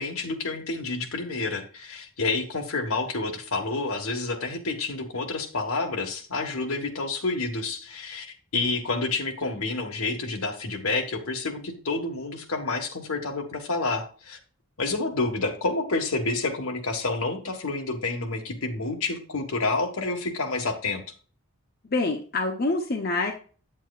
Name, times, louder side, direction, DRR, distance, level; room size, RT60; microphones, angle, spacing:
voice 1, 0.0-14.4 14.8-21.0, left 3 dB, 75° left, 4 dB, 1.5 m, -29 dB
voice 2, 21.8-23.3, left 2 dB, 45° left, 2 dB, 0.9 m, -26 dB
8.9 x 7.5 x 2.4 m, 0.39 s
head